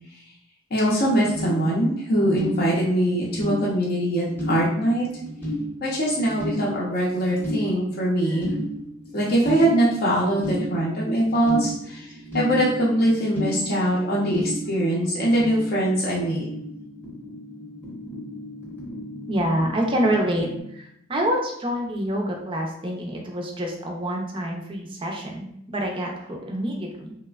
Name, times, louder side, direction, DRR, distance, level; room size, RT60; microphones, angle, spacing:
voice 1, 0.7-5.1 5.8-8.5 9.1-12.1 12.3-16.5, right 1 dB, 50° left, -5 dB, 0.6 m, -22 dB
sound 1, 1.1-20.6, equal, 10° left, 0.7 m, -34 dB
voice 2, 19.3-27.2, equal, 25° right, 1 dB, 0.4 m, -27 dB
3.1 x 2.0 x 2.3 m, 0.75 s
head